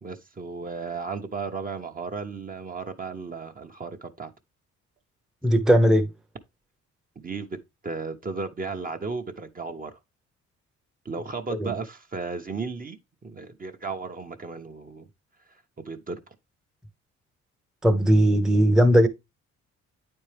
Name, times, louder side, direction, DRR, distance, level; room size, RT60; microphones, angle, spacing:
voice 1, 0.0-4.3 7.2-7.6 7.8-10.0 11.0-15.1 15.5-16.3, right 4 dB, 30° right, 0.9 m, -35 dB
voice 2, 5.4-6.1 11.6-11.7 17.8-19.1, equal, ahead, 0.8 m, -18 dB
8.8 x 4.4 x 3.4 m
cardioid pair, 90°, 30 cm